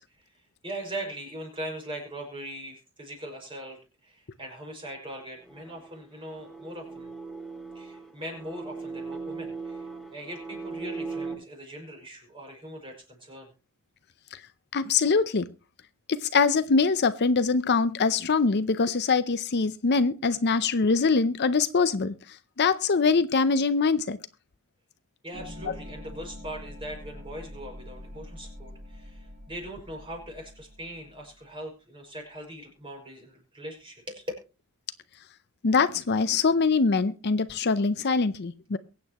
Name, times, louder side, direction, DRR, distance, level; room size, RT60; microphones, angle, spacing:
voice 1, 0.6-7.1 7.7-13.5 25.2-34.3, right 1 dB, 25° right, 1 dB, 5.6 m, -40 dB
sound 1, 5.4-11.3, right 4 dB, ahead, 2.0 m, -38 dB
voice 2, 14.7-15.5 16.1-24.2 35.6-38.8, left 4 dB, 50° left, 13 dB, 0.6 m, -23 dB
sound 2, 25.3-31.4, left 1 dB, 45° right, 2.2 m, -45 dB
23.0 x 8.6 x 3.0 m, 0.31 s
head